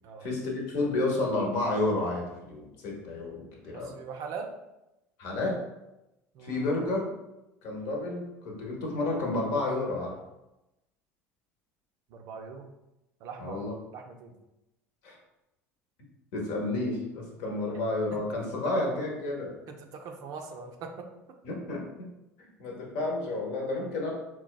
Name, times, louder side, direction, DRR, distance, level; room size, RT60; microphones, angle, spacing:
voice 1, 0.2-3.9 5.2-5.6 6.4-7.1 7.6-10.2 13.4-13.7 15.0-15.2 16.3-19.5 21.4-22.1 22.4-24.1, left 2 dB, 60° left, 0 dB, 0.9 m, -31 dB
voice 2, 3.7-4.5 6.3-6.6 12.1-12.7 13.2-13.6 13.9-14.3 19.7-21.1, right 5 dB, 50° right, 4 dB, 0.4 m, -41 dB
4.2 x 2.2 x 2.2 m, 0.94 s
hypercardioid pair, 70°, 8 cm